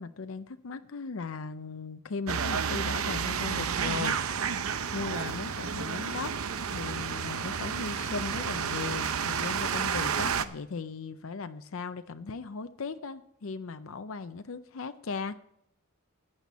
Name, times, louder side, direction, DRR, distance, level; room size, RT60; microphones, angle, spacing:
voice 1, 0.0-4.4 4.9-15.4, left 4 dB, 65° left, 11 dB, 0.6 m, -38 dB
sound 1, 2.3-10.4, right 6 dB, 90° right, 0.7 m, -31 dB
14.5 x 10.0 x 4.1 m, 0.75 s
head